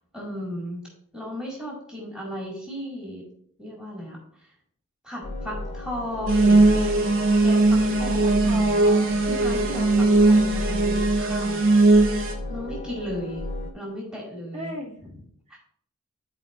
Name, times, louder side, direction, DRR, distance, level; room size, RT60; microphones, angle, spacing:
voice 1, 0.1-0.8 1.1-3.2 3.6-4.5 5.0-7.1 7.4-8.8 9.2-11.8 12.5-13.4 13.7-14.8 15.5-15.6, equal, 5° right, -4 dB, 2.0 m, -35 dB
sound 1, 5.2-13.7, left 1 dB, 30° left, 0.6 m, -32 dB
sound 2, 6.3-12.3, right 2 dB, 65° right, 0.9 m, -19 dB
voice 2, 8.2-9.2 14.5-15.6, right 1 dB, 35° right, -4 dB, 2.1 m, -35 dB
11.5 x 4.5 x 2.5 m, 0.62 s
head